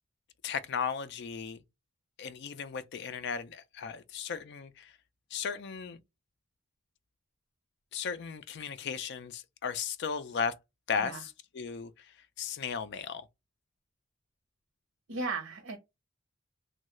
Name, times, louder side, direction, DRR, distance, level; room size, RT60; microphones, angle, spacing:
voice 1, 0.4-1.6 2.2-4.9 5.3-6.0 7.9-10.5 10.9-12.1 12.4-13.2, left 6 dB, 55° left, 0.4 m, -36 dB
voice 2, 15.1-15.8, right 3 dB, 85° right, 0.7 m, -35 dB
3.0 x 2.3 x 2.9 m
head